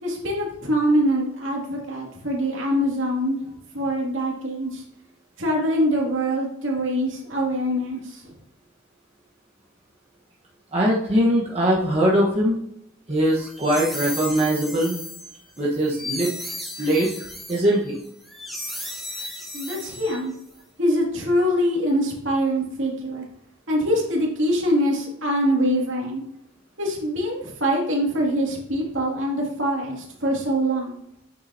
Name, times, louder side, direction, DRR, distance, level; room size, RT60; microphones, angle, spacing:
voice 1, 0.0-3.4 3.7-4.8 5.4-8.3 19.5-20.3 20.8-23.3 23.7-26.2 26.8-31.0, equal, 60° right, -1 dB, 2.5 m, -24 dB
voice 2, 10.7-12.6 13.1-15.0 15.6-16.3 16.8-18.0, equal, 30° right, -5 dB, 1.3 m, -21 dB
sound 1, 13.2-20.5, left 1 dB, ahead, 1.5 m, -36 dB
8.7 x 7.1 x 2.8 m, 0.74 s
head